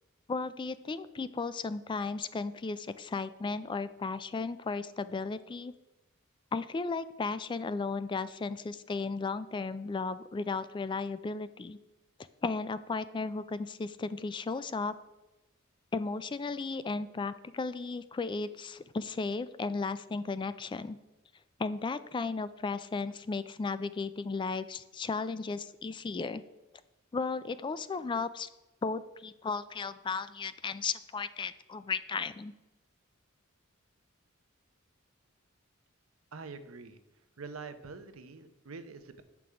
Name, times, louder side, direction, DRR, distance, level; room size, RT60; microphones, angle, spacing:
voice 1, 0.3-5.7 6.5-11.8 12.4-14.9 15.9-21.0 21.6-26.4 27.1-28.5 28.8-32.5, left 4 dB, 25° left, 14 dB, 0.3 m, -35 dB
voice 2, 36.3-37.0 37.4-39.2, right 4 dB, 85° right, 10 dB, 0.8 m, -45 dB
8.2 x 6.0 x 4.8 m, 1.0 s
head